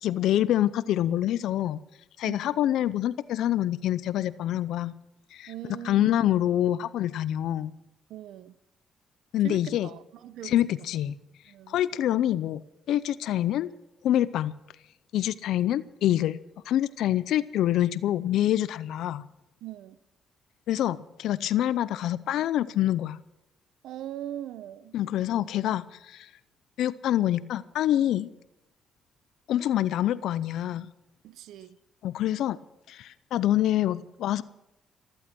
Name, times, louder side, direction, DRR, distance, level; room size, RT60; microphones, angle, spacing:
voice 1, 0.0-1.8 2.2-4.9 5.3-5.5 5.8-7.7 9.3-9.9 10.4-11.2 11.7-12.6 12.9-13.7 14.0-14.5 15.1-16.4 16.7-19.3 20.7-23.2 24.9-26.3 26.8-28.3 29.5-30.9 32.0-32.6 32.9-34.4, left 12 dB, 80° left, 0.5 m, -26 dB
voice 2, 5.5-6.1 8.1-8.5 9.4-10.9 11.5-11.8 19.6-20.0 23.8-25.0 31.2-31.8, right 12 dB, 85° right, 0.8 m, -40 dB
15.0 x 14.5 x 6.0 m
cardioid pair, 90°, 0 cm